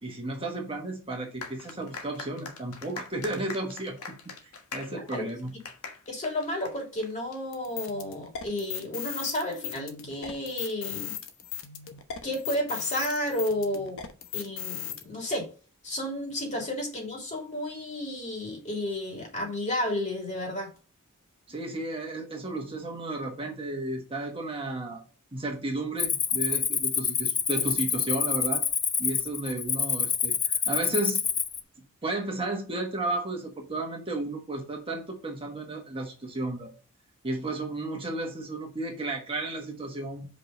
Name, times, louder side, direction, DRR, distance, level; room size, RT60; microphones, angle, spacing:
voice 1, 0.0-4.0 4.4-5.5 21.5-25.0 25.3-28.6 29.0-31.2 32.0-36.7 37.2-40.3, right 2 dB, 25° right, 1.4 m, -33 dB
sound 1, 1.4-7.4, left 5 dB, 80° left, 1.4 m, -42 dB
voice 2, 4.9-5.3 6.1-11.2 12.2-14.0 14.3-15.5 15.8-20.7, left 1 dB, 35° left, 3.0 m, -32 dB
sound 2, 7.5-15.0, left 9 dB, 60° left, 1.0 m, -37 dB
Cricket, 26.0-31.6, left 7 dB, 20° left, 0.5 m, -27 dB
5.3 x 5.3 x 5.2 m
head